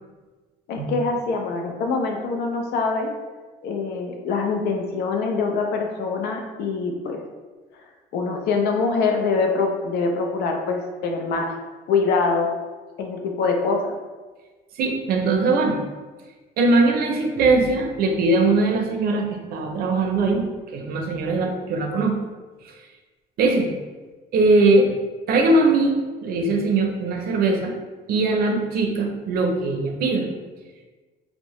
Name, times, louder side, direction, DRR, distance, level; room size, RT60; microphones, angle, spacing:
voice 1, 0.7-3.1 3.6-7.2 8.1-11.5 11.9-12.5 13.0-14.0, left 4 dB, 80° left, 3 dB, 0.5 m, -24 dB
voice 2, 14.8-15.8 16.6-22.2 22.6-22.7 23.4-23.7 24.3-24.9 25.3-27.7 28.1-30.3, right 3 dB, 65° right, 3 dB, 0.5 m, -20 dB
2.7 x 2.0 x 3.0 m, 1.3 s
cardioid pair, 110°, 17 cm